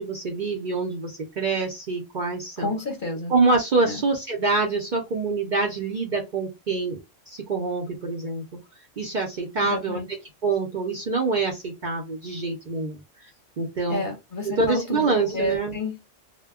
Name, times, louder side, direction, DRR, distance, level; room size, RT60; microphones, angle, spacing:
voice 1, 0.0-2.7 3.3-7.0 7.3-8.4 9.0-10.0 10.4-13.3 13.6-14.0 14.5-15.8, right 3 dB, 55° right, 1 dB, 0.6 m, -25 dB
voice 2, 2.6-3.3 3.8-4.0 9.6-10.1 13.9-15.1 15.3-16.0, left 2 dB, 50° left, 4 dB, 0.8 m, -30 dB
2.1 x 2.1 x 3.5 m, 0.22 s
omnidirectional pair, 1.3 m